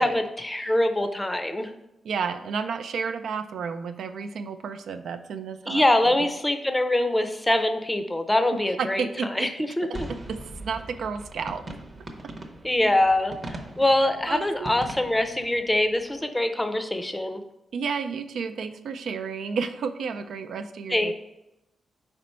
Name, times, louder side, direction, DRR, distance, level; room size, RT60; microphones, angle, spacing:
voice 1, 0.0-1.7 5.7-9.0 9.3-9.5 9.8-10.1 12.6-13.4 13.8-17.4 20.9-21.1, left 1 dB, 10° left, 7 dB, 0.6 m, -24 dB
voice 2, 2.0-6.3 8.5-9.5 9.9-11.6 14.3-14.7 17.7-21.1, right 5 dB, 75° right, 8 dB, 0.4 m, -32 dB
sound 1, 9.9-16.2, right 1 dB, 25° right, 0.7 m, -41 dB
5.0 x 4.4 x 5.4 m, 0.89 s
wide cardioid pair, 165°, 0 cm